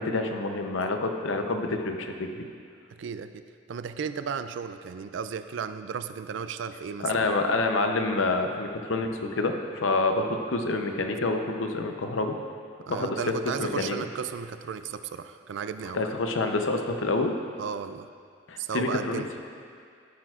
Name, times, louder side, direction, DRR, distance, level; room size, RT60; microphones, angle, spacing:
voice 1, 0.0-2.3 7.0-12.4 12.9-13.2 13.6-14.0 15.9-17.3 18.5-19.2, left 3 dB, 80° left, 5 dB, 0.7 m, -27 dB
voice 2, 3.0-7.3 12.9-16.0 17.6-18.1 18.6-19.3, right 6 dB, 70° right, 11 dB, 0.4 m, -34 dB
12.0 x 8.9 x 2.4 m, 2.3 s
head